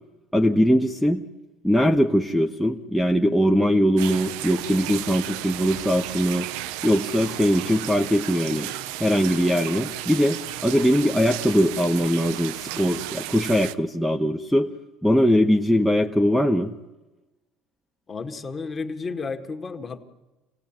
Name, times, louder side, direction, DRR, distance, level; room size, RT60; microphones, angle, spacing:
voice 1, 0.3-1.2 1.6-6.5 6.8-8.7 9.0-14.7 15.0-16.7, equal, ahead, 0 dB, 1.0 m, -21 dB
sound 1, 4.0-13.7, right 14 dB, 80° right, 0.9 m, -34 dB
voice 2, 18.1-20.0, left 4 dB, 25° left, 5 dB, 1.8 m, -32 dB
27.5 x 17.0 x 9.0 m, 1.1 s
cardioid pair, 135°, 0 cm